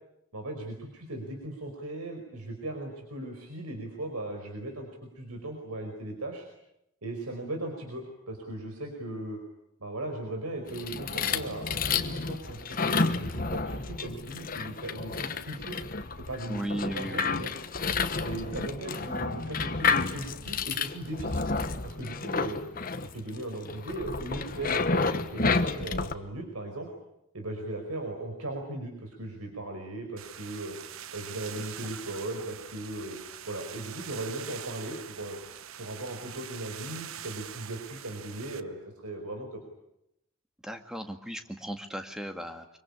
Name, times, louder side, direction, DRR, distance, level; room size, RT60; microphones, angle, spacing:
voice 1, 0.3-4.9 5.1-6.5 7.0-9.4 9.8-15.8 16.3-17.5 18.2-21.5 21.8-22.6 23.0-26.9 27.3-30.8 31.1-33.2 33.5-35.4 35.8-39.6, right 1 dB, 90° right, 3 dB, 5.0 m, -38 dB
sound 1, 10.7-26.1, left 4 dB, 40° left, 1.2 m, -30 dB
voice 2, 16.5-17.3 40.6-42.8, right 1 dB, ahead, 5 dB, 1.8 m, -36 dB
sound 2, 30.2-38.6, right 9 dB, 70° right, 1.0 m, -44 dB
25.0 x 23.5 x 9.9 m, 0.83 s
head